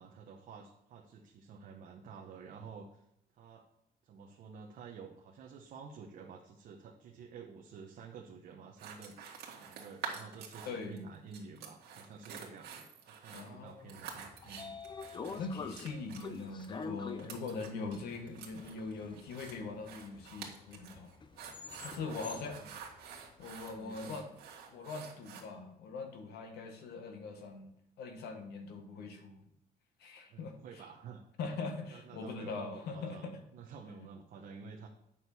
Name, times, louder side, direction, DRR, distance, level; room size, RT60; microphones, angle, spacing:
voice 1, 0.0-3.0 3.3-3.6 4.0-9.2 9.6-14.8 21.9-22.7 23.7-24.2 30.3-31.2 31.9-34.9, right 5 dB, 55° right, 0 dB, 1.0 m, -51 dB
sound 1, 8.8-11.0 11.3-25.4, right 7 dB, 80° right, 1.9 m, -48 dB
voice 2, 10.6-11.0 13.3-14.0 15.3-21.1 21.8-22.6 23.4-24.3 24.7-27.7 28.0-29.4 30.0-30.8 31.4-33.4, left 4 dB, 80° left, 5 dB, 1.6 m, -42 dB
Train / Sliding door, 14.0-24.1, left 5 dB, 30° left, 0.6 m, -47 dB
8.9 x 6.4 x 4.2 m, 0.79 s
cardioid pair, 160°, 16 cm